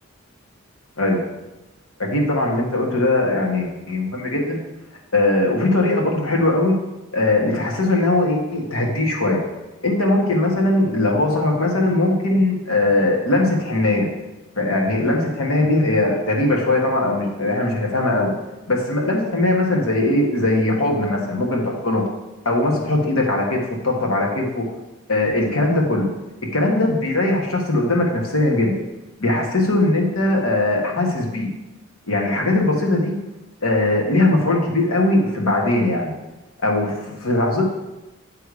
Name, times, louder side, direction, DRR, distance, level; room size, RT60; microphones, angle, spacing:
voice 1, 2.0-4.6 5.1-6.8 7.1-9.4 9.8-14.1 14.5-18.3 18.7-22.0 22.4-24.6 25.1-26.1 26.5-28.7 29.2-31.5 32.1-33.1 33.6-36.1 36.6-37.7, left 2 dB, 80° left, -1 dB, 1.5 m, -20 dB
9.4 x 3.4 x 4.8 m, 1.0 s
head